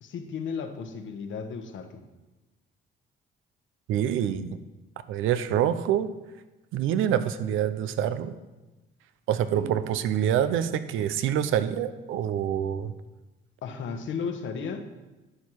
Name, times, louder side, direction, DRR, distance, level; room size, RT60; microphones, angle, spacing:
voice 1, 0.0-2.0 9.5-9.7 13.6-14.9, left 5 dB, 75° left, 7 dB, 1.3 m, -34 dB
voice 2, 3.9-4.6 5.1-6.1 6.7-8.3 9.3-12.9, right 10 dB, 85° right, 12 dB, 0.7 m, -26 dB
11.5 x 7.5 x 4.7 m, 1.1 s
cardioid pair, 90°, 20 cm